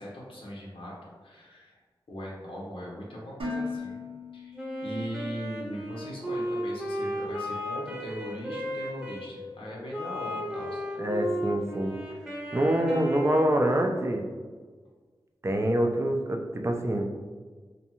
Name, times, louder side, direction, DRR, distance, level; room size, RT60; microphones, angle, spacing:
voice 1, 0.0-1.8 2.1-4.0 4.3-11.1, equal, 80° left, -5 dB, 0.6 m, -40 dB
Dishes pots and pans, 3.4-5.5, left 3 dB, 80° right, 0.6 m, -37 dB
Wind instrument woodwind instrument, 4.6-9.3 9.9-13.8, equal, 5° right, 0.8 m, -35 dB
voice 2, 11.0-12.0 12.5-14.3 15.4-17.1, right 1 dB, 30° right, 3 dB, 0.4 m, -25 dB
2.6 x 2.2 x 2.8 m, 1.5 s
cardioid pair, 50°, 9 cm